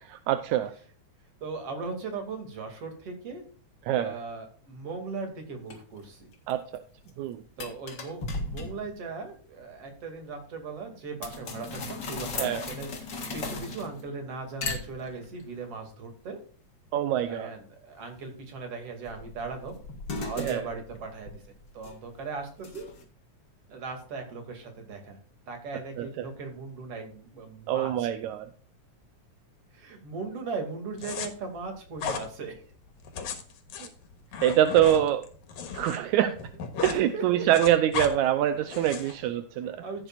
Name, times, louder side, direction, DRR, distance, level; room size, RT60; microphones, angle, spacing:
voice 1, 0.3-0.7 3.8-4.2 6.5-6.6 7.2-7.4 12.4-12.6 16.9-17.5 20.4-20.6 26.0-26.3 27.7-28.5 33.8-33.9 34.4-35.2 35.7-36.4 36.8-39.8, right 12 dB, 80° right, 10 dB, 2.0 m, -25 dB
voice 2, 1.4-3.4 3.9-6.3 7.6-12.9 13.3-16.4 17.3-19.8 20.1-21.4 21.7-22.9 23.7-25.2 25.5-28.1 29.7-32.6 34.3-34.4 34.8-35.0 36.8-37.5 38.7-38.8 39.8-40.1, right 4 dB, 50° right, 4 dB, 3.4 m, -38 dB
sound 1, 5.7-5.8 6.3-6.8 7.1-7.2 7.6-9.0 11.2-14.2 14.6-15.4 19.1-22.2 22.6-23.0, left 3 dB, 40° left, 2.1 m, -37 dB
sound 2, 31.0-31.3 32.0-32.3 33.0-36.0 36.3-37.0 37.3-38.1 38.7-39.2, left 5 dB, 75° left, 2.8 m, -35 dB
15.0 x 8.9 x 2.5 m, 0.42 s
omnidirectional pair, 3.5 m